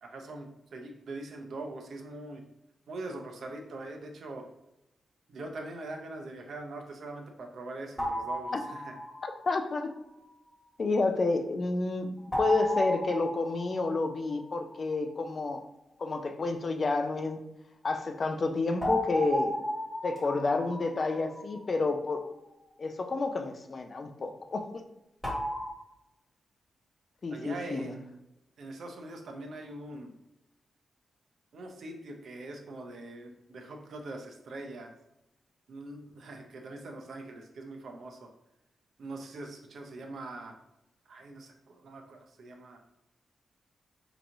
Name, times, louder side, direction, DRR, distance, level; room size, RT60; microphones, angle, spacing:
voice 1, 0.0-2.4 2.9-4.5 5.3-8.9 27.3-28.0 28.6-30.1 31.5-34.9 35.7-38.3 39.0-40.6 41.1-42.8, right 2 dB, 65° right, 3 dB, 0.6 m, -42 dB
sound 1, 8.0-9.5 12.3-14.8 18.8-22.0 25.2-25.7, equal, 5° left, 1.3 m, -34 dB
voice 2, 9.2-9.9 10.8-15.6 16.0-17.4 17.8-19.6 20.0-22.3 22.8-24.8 27.2-28.0, left 3 dB, 35° left, 5 dB, 0.3 m, -30 dB
4.6 x 2.9 x 2.6 m, 0.88 s
wide cardioid pair, 160°, 0 cm